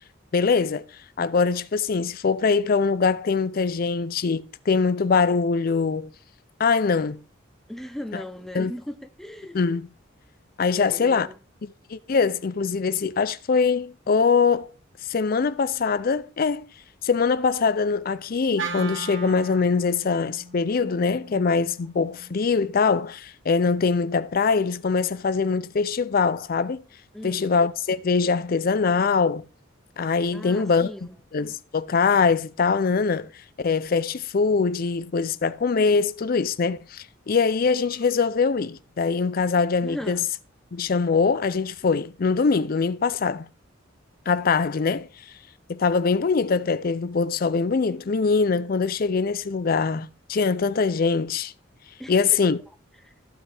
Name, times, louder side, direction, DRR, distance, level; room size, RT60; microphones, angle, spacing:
voice 1, 0.3-0.8 1.2-6.1 6.6-7.2 8.1-8.2 8.5-8.7 9.5-9.8 10.6-11.3 11.6-14.7 15.1-16.7 17.0-26.8 27.2-29.4 30.0-30.9 31.3-33.3 33.6-40.2 40.7-43.5 44.3-45.1 45.7-51.5 52.1-52.6, left 5 dB, 45° left, 0.4 m, -23 dB
voice 2, 7.7-9.6 10.8-11.4 27.1-27.5 30.3-31.2 39.8-40.3 52.0-52.5 53.0-53.1, left 1 dB, ahead, 0.7 m, -37 dB
Wind instrument woodwind instrument, 18.6-22.8, right 4 dB, 65° right, 1.1 m, -38 dB
14.5 x 5.6 x 3.4 m
head